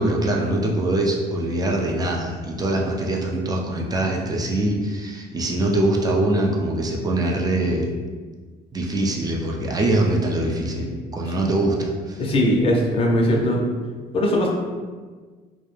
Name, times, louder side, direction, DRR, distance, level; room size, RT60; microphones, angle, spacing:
voice 1, 0.0-7.9 8.7-12.2, right 1 dB, 20° right, -1 dB, 0.4 m, -23 dB
voice 2, 12.2-13.6 14.1-14.5, left 1 dB, 35° left, -1 dB, 0.5 m, -19 dB
2.3 x 2.0 x 3.1 m, 1.5 s
cardioid pair, 110°, 17 cm